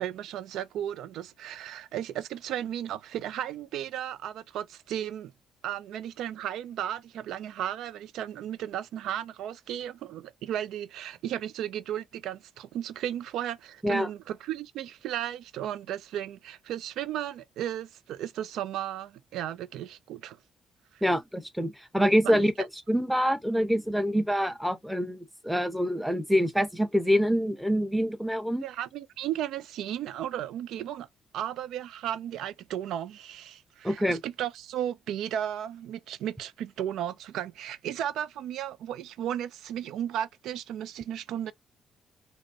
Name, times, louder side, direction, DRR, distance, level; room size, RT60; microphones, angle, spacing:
voice 1, 0.0-5.3 5.6-20.4 20.9-21.0 22.2-22.4 28.6-31.1 31.3-41.5, right 11 dB, 85° right, 0.3 m, -35 dB
voice 2, 21.0-22.5 22.9-28.6 33.8-34.2, equal, ahead, 0.8 m, -26 dB
5.1 x 2.1 x 2.6 m
cardioid pair, 90°, 0 cm